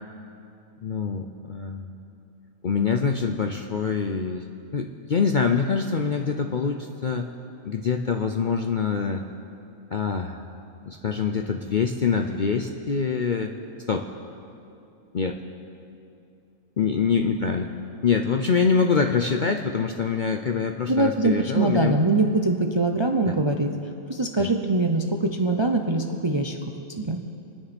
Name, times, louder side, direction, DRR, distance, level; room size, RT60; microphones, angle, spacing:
voice 1, 0.8-1.9 2.6-4.4 4.7-7.3 7.6-9.3 9.9-10.4 10.9-13.5 13.9-14.1 15.1-15.4 16.8-17.7 18.0-22.0 23.3-23.4 24.4-24.5, left 5 dB, 50° left, 4 dB, 0.6 m, -25 dB
voice 2, 20.9-23.7 24.1-26.6 27.0-27.2, right 2 dB, 30° right, 4 dB, 0.5 m, -23 dB
27.0 x 9.8 x 4.3 m, 2.6 s
omnidirectional pair, 1.5 m